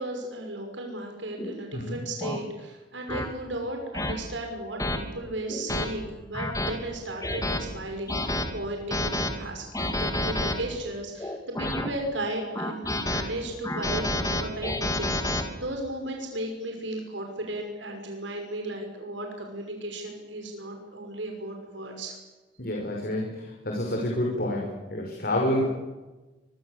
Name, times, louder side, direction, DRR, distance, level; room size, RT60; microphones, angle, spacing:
voice 1, 0.0-22.2, right 1 dB, 90° right, 2 dB, 5.8 m, -35 dB
sound 1, 1.4-1.6 2.2-2.4 3.1-3.3 3.9-4.1 4.8-5.0 5.5-5.9 6.3-6.7 7.2-7.6 8.1-8.5 8.9-9.3 9.7-10.5 11.2-11.9 12.5-13.2 13.6-15.4, left 1 dB, 20° left, 3.3 m, -28 dB
voice 2, 22.6-25.7, left 1 dB, 55° left, 0 dB, 5.8 m, -28 dB
25.0 x 24.0 x 8.3 m, 1.2 s
head